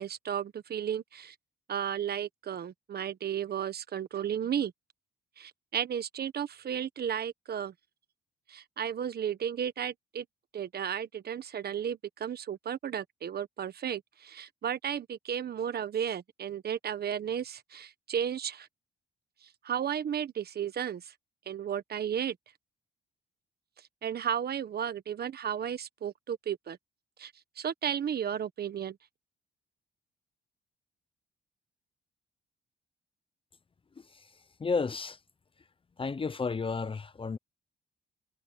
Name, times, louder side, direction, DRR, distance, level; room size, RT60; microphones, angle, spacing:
voice 1, 0.0-1.3 1.7-4.7 5.4-7.7 8.5-10.2 10.5-18.7 19.4-21.1 21.5-22.4 24.0-26.8 27.2-29.0, right 8 dB, 55° right, 1.3 m, -34 dB
voice 2, 34.6-35.2 36.0-37.4, left 4 dB, 25° left, 0.8 m, -31 dB
cardioid pair, 90°, 20 cm